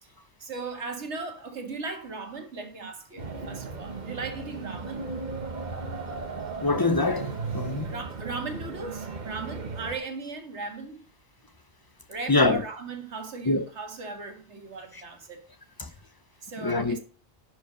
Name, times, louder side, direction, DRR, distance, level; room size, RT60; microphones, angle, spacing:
voice 1, 0.4-5.1 7.8-11.0 12.1-15.4 16.4-17.0, right 3 dB, 80° right, 1.9 m, -37 dB
sound 1, 3.2-10.0, right 4 dB, 45° right, 1.1 m, -36 dB
voice 2, 6.6-7.9 12.3-12.6 13.5-13.6 15.8-15.9 16.6-17.0, left 2 dB, 25° left, 0.7 m, -24 dB
11.0 x 4.8 x 5.1 m
omnidirectional pair, 1.1 m